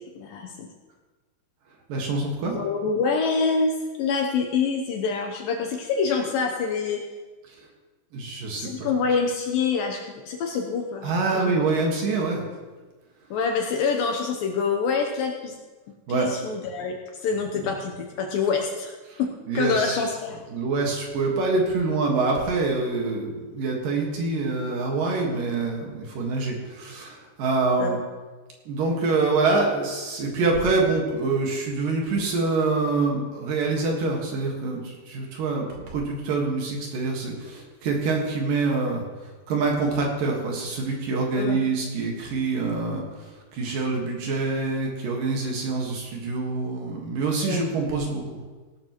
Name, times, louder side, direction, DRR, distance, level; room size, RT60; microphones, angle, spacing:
voice 1, 0.2-0.7 2.5-3.7 4.0-7.0 8.5-11.6 13.3-15.6 16.1-20.4 27.8-28.0 41.4-41.6 47.4-47.6, left 5 dB, 75° left, 2 dB, 2.2 m, -26 dB
voice 2, 1.9-2.6 7.5-7.6 8.1-8.9 11.0-12.5 16.1-16.3 19.1-19.2 19.5-19.9 20.5-28.0 28.7-48.4, right 3 dB, 60° right, 0 dB, 3.0 m, -26 dB
17.5 x 12.5 x 3.0 m, 1.3 s
omnidirectional pair, 4.8 m